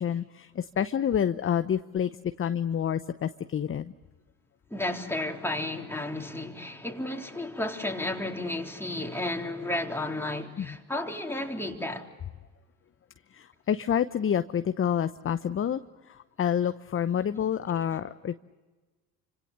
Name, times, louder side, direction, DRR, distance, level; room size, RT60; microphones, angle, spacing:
voice 1, 0.0-2.1 2.4-3.9 10.6-10.8 13.3-15.8 16.1-18.4, left 9 dB, 25° left, 0.8 m, -28 dB
voice 2, 4.7-12.1, left 1 dB, 5° left, 3.7 m, -32 dB
30.0 x 26.0 x 6.7 m
hypercardioid pair, 60°, 48 cm